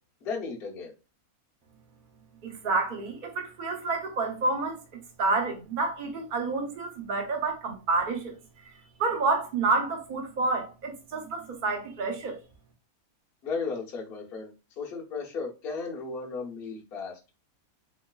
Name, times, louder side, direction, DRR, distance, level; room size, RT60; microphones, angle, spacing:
voice 1, 0.2-0.9 13.4-17.2, left 4 dB, 50° left, 1.0 m, -35 dB
voice 2, 2.4-4.8 5.2-8.3 9.0-12.4, right 3 dB, 45° right, 0.8 m, -29 dB
3.5 x 3.0 x 2.2 m
omnidirectional pair, 1.5 m